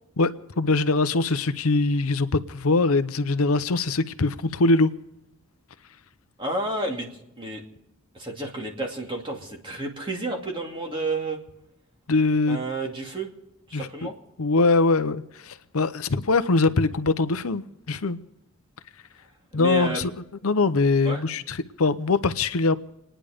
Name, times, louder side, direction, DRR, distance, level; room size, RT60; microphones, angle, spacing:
voice 1, 0.2-4.9 12.1-12.6 13.7-13.9 14.4-18.2 19.5-20.1 20.4-22.8, left 3 dB, 75° left, 0.7 m, -22 dB
voice 2, 6.4-7.6 8.1-11.4 12.5-13.3 13.7-14.1 19.5-20.1 21.0-21.2, right 2 dB, 20° right, 2.5 m, -31 dB
27.5 x 10.0 x 5.1 m
head